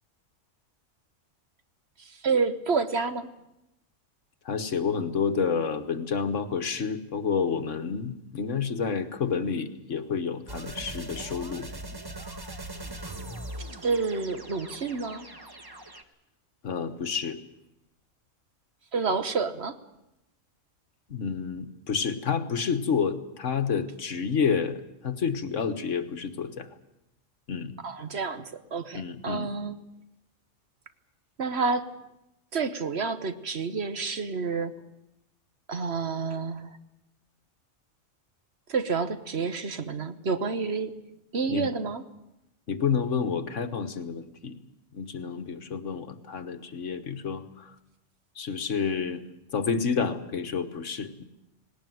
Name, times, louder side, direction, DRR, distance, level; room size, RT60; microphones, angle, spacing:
voice 1, 2.2-3.3 13.8-15.3 18.9-19.7 27.8-29.8 31.4-31.9 32.5-34.7 35.7-36.7 38.7-40.9 41.3-42.0, right 4 dB, 55° right, 10 dB, 1.4 m, -29 dB
voice 2, 4.5-11.7 16.6-17.4 21.1-24.8 25.0-26.7 27.5-27.7 28.9-29.5 41.5-41.7 42.7-44.5 44.9-47.4 48.4-49.2 49.5-51.2, left 6 dB, 70° left, 9 dB, 1.6 m, -29 dB
sound 1, 10.5-16.0, right 1 dB, 20° right, 1.2 m, -40 dB
19.0 x 18.5 x 9.3 m, 0.88 s
omnidirectional pair, 1.3 m